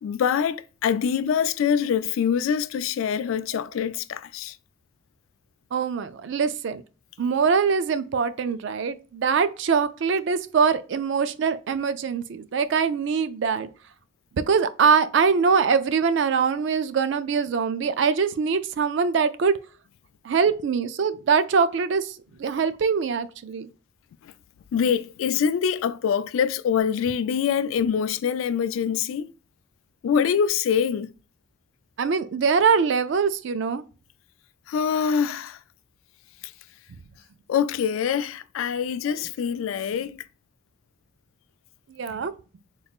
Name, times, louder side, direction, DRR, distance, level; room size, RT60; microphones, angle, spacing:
voice 1, 0.0-4.6 24.2-24.3 24.7-29.3 30.0-31.1 34.7-35.6 37.5-40.2, left 7 dB, 80° left, 0.3 m, -24 dB
voice 2, 5.7-6.8 7.2-13.7 14.4-19.6 20.2-23.7 32.0-33.8 41.9-42.3, right 5 dB, 60° right, 0.3 m, -23 dB
4.0 x 2.4 x 3.5 m
head